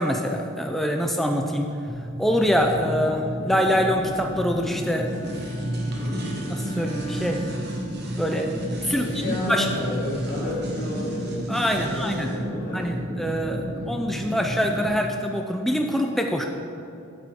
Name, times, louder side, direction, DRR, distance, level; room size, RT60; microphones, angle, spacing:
voice 1, 0.0-1.7 2.2-5.1 5.4-5.6 6.0-6.1 6.5-7.4 8.2-8.5 8.8-9.7 11.5-12.3 12.7-16.5, equal, ahead, 2 dB, 0.3 m, -25 dB
sound 1, 1.9-14.9, equal, 25° right, 0.9 m, -32 dB
Bowed string instrument, 3.5-8.5, right 2 dB, 25° left, 1.2 m, -41 dB
sound 2, 4.8-12.4, right 1 dB, 50° right, 1.2 m, -38 dB
voice 2, 5.9-6.6 8.9-12.9 13.1-13.3, left 1 dB, 40° left, -8 dB, 2.2 m, -31 dB
8.8 x 8.4 x 3.6 m, 2.7 s
head